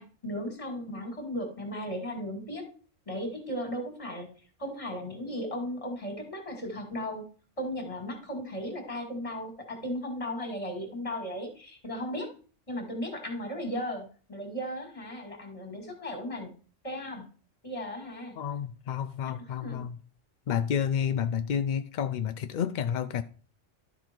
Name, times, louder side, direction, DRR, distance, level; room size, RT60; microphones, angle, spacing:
voice 1, 0.0-2.6 3.1-4.3 4.6-7.2 7.6-12.3 12.7-16.5 16.8-17.3 17.6-18.3 19.2-19.8, equal, 25° left, 2.3 m, -36 dB
voice 2, 18.4-20.0 20.5-23.2, left 8 dB, 65° left, 0.4 m, -30 dB
12.0 x 5.4 x 4.5 m
omnidirectional pair, 1.3 m